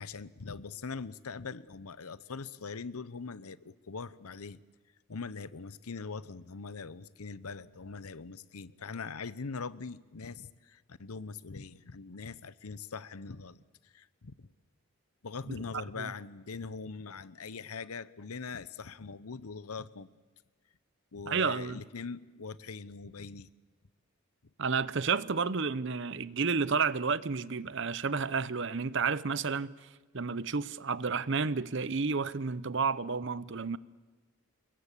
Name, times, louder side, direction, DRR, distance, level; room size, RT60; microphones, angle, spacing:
voice 1, 0.0-4.6 5.1-14.5 15.2-20.2 21.1-23.5, left 4 dB, 90° left, 0.9 m, -42 dB
voice 2, 15.7-16.1 21.3-21.8 24.6-29.9 30.1-33.8, right 5 dB, 55° right, 0.7 m, -31 dB
27.0 x 22.0 x 8.4 m
head